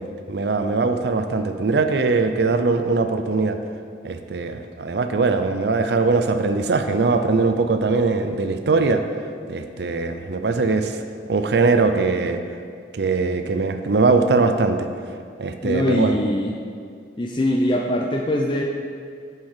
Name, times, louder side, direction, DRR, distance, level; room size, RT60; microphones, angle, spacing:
voice 1, 0.0-3.6 4.0-9.0 9.5-11.0 11.3-12.4 12.9-14.9 15.4-16.1, right 3 dB, 70° right, 8 dB, 0.5 m, -21 dB
voice 2, 15.6-16.5 17.2-18.6, left 1 dB, 25° left, 0 dB, 0.4 m, -22 dB
9.2 x 4.5 x 4.9 m, 2.2 s
head